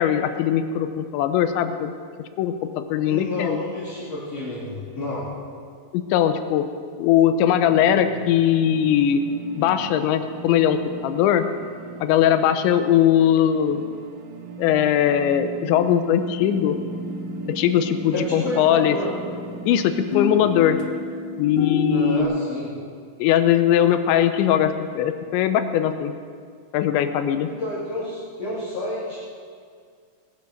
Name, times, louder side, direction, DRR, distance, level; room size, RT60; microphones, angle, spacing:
voice 1, 0.0-1.9 2.2-3.6 5.9-6.7 7.0-9.2 9.5-11.5 12.0-13.8 14.6-16.8 17.5-19.0 19.6-20.8 21.4-22.3 23.2-26.1 26.7-27.5, left 10 dB, 85° left, 9 dB, 3.0 m, -20 dB
voice 2, 3.0-5.3 18.1-19.1 21.9-22.7 27.5-29.2, left 1 dB, 35° left, -10 dB, 4.4 m, -30 dB
sound 1, 7.7-20.7, right 6 dB, 80° right, 3.6 m, -38 dB
sound 2, 16.4-22.2, left 5 dB, 70° left, 2.5 m, -30 dB
20.0 x 10.5 x 6.4 m, 2.1 s
omnidirectional pair, 5.3 m